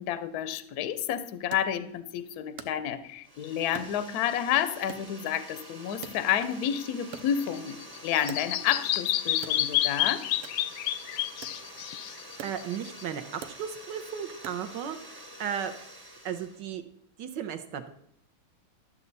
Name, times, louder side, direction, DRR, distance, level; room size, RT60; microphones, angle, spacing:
voice 1, 0.0-7.8 8.0-10.2, left 10 dB, 75° left, 13 dB, 0.9 m, -30 dB
Wood, 1.5-3.3 3.7-4.5 4.9-6.7 7.0-8.9 9.3-14.9, right 9 dB, 85° right, 1.7 m, -47 dB
sound 1, 3.2-16.7, right 1 dB, 15° right, 0.8 m, -48 dB
Bird vocalization bird call bird song, 7.1-13.0, left 13 dB, 90° left, 1.5 m, -30 dB
voice 2, 12.1-15.7 16.2-16.8 17.2-17.9, right 8 dB, 65° right, 9 dB, 1.2 m, -35 dB
12.5 x 7.2 x 4.0 m, 0.72 s
omnidirectional pair, 2.4 m